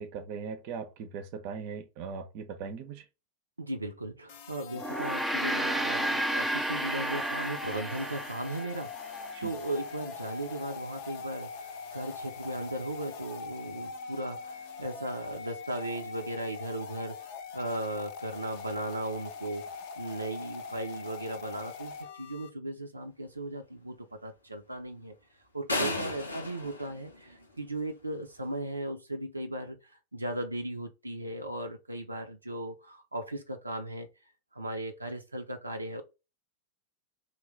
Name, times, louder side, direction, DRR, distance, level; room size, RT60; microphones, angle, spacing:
voice 1, 0.0-3.1 9.3-9.6 25.8-26.1, right 5 dB, 45° right, 0.6 m, -40 dB
voice 2, 3.6-25.2 25.5-34.1 34.5-36.0, right 1 dB, 85° right, 0.5 m, -37 dB
sound 1, 4.3-22.5, left 5 dB, 50° left, 0.6 m, -42 dB
Gong, 4.7-9.4, right 1 dB, ahead, 0.5 m, -32 dB
sound 2, 25.7-27.8, left 2 dB, 80° left, 0.8 m, -34 dB
3.2 x 2.4 x 3.6 m
figure-of-eight pair, 90°, 0 cm